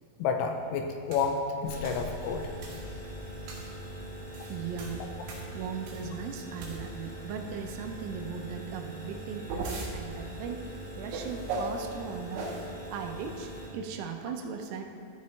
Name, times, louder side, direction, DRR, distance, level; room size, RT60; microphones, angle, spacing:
voice 1, 0.2-2.5, left 5 dB, 85° left, 4 dB, 3.1 m, -30 dB
sound 1, 1.1-1.3 1.8-2.1 2.6-2.9 3.5-3.7 4.2-6.2 6.6-7.1 9.0-9.9 11.1-11.8 12.3-12.7, right 3 dB, 65° right, 3.5 m, -38 dB
sound 2, 1.7-13.7, right 1 dB, 55° left, 4.0 m, -42 dB
voice 2, 4.5-5.0 5.3-12.5 12.9-14.8, right 6 dB, 85° right, 4 dB, 3.3 m, -38 dB
14.5 x 6.7 x 3.3 m, 2.7 s
omnidirectional pair, 6.0 m